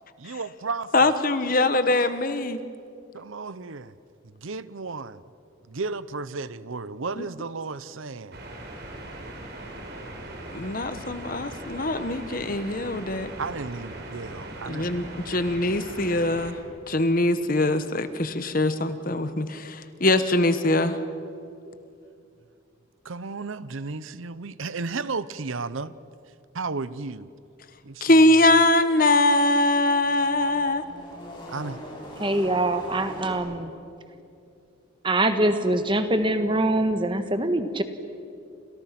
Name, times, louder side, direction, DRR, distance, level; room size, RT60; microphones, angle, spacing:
voice 1, 0.2-1.1 3.1-3.9 4.4-5.2 5.7-8.4 13.4-14.9 23.0-25.9 26.5-27.3 27.8-28.4 31.5-31.8, right 4 dB, 75° right, 16 dB, 0.8 m, -33 dB
voice 2, 0.9-2.6 7.2-7.3 10.5-13.3 14.7-16.6 16.9-21.0 28.0-30.8, left 2 dB, 40° left, 11 dB, 1.2 m, -22 dB
sound 1, 8.3-16.5, right 1 dB, 50° right, 4.3 m, -40 dB
sound 2, 29.3-33.4, left 1 dB, 25° left, 8.0 m, -41 dB
voice 3, 32.2-33.5 35.0-37.8, right 1 dB, 25° right, 8 dB, 1.5 m, -23 dB
30.0 x 27.5 x 6.0 m, 2.6 s
head